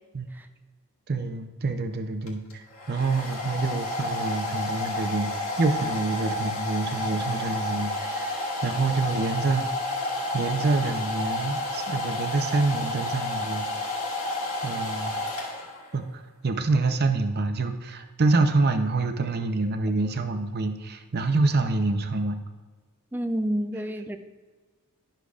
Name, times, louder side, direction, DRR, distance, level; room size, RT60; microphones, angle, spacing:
voice 1, 1.1-10.0 10.3-13.7 14.6-15.2 15.9-22.4, right 3 dB, 45° right, 7 dB, 0.6 m, -27 dB
Domestic sounds home sounds, 2.3-16.0, left 1 dB, 75° left, 1.6 m, -31 dB
voice 2, 23.1-24.2, equal, 10° right, 8 dB, 0.4 m, -29 dB
11.5 x 6.5 x 2.4 m, 1.4 s
head